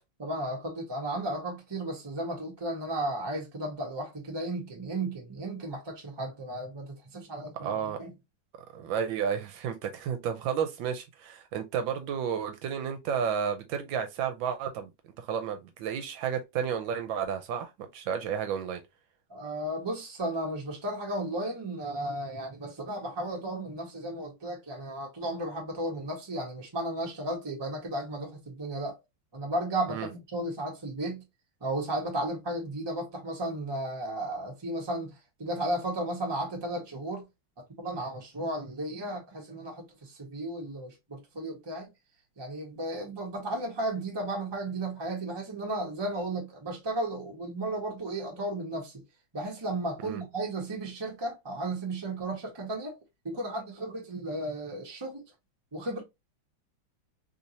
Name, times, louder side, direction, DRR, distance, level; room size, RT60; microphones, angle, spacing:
voice 1, 0.2-8.1 19.3-29.0 29.3-31.2 31.6-37.2 37.8-41.9 42.4-49.0 49.3-53.0 53.2-55.2 55.7-56.0, right 1 dB, 20° right, 0.7 m, -34 dB
voice 2, 7.5-8.0 8.7-14.9 15.2-18.8 29.9-30.1 50.0-50.2, right 7 dB, 80° right, 1.3 m, -32 dB
3.5 x 2.7 x 2.8 m
omnidirectional pair, 2.2 m